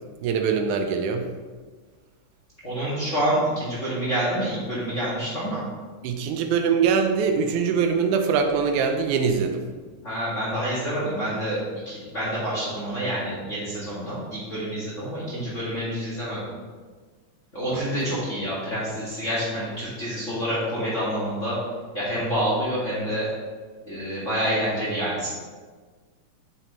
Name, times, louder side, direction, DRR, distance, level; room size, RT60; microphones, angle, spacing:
voice 1, 0.2-1.3 6.0-9.6 17.7-17.8, right 6 dB, 85° right, 5 dB, 2.0 m, -23 dB
voice 2, 2.6-5.6 10.0-16.4 17.5-21.6 21.9-23.3 23.8-25.3, equal, 30° left, -8 dB, 1.8 m, -27 dB
8.1 x 7.4 x 3.1 m, 1.5 s
omnidirectional pair, 3.6 m